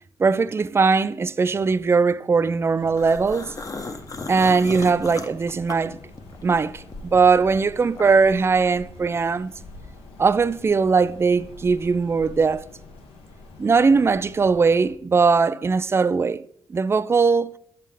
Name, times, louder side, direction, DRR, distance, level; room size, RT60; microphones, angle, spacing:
voice 1, 0.2-3.5 4.3-6.0 6.4-9.5 10.2-12.6 13.6-17.5, right 4 dB, 25° right, 0.3 m, -20 dB
sound 1, 2.7-14.9, left 2 dB, 85° left, 1.0 m, -45 dB
sound 2, 3.0-6.5 6.9-8.4, left 3 dB, 35° left, 0.7 m, -36 dB
7.3 x 5.4 x 3.4 m
cardioid pair, 70°, 10 cm